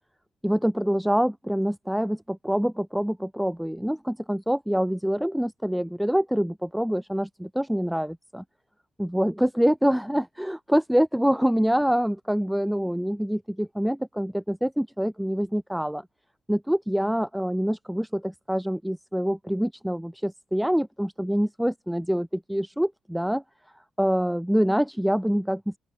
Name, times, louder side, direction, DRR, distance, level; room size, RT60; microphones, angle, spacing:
voice 1, 0.4-8.4 9.0-16.1 16.5-23.4 24.0-25.8, equal, ahead, 5.7 m, -25 dB
open air
cardioid pair, 100°, 0 cm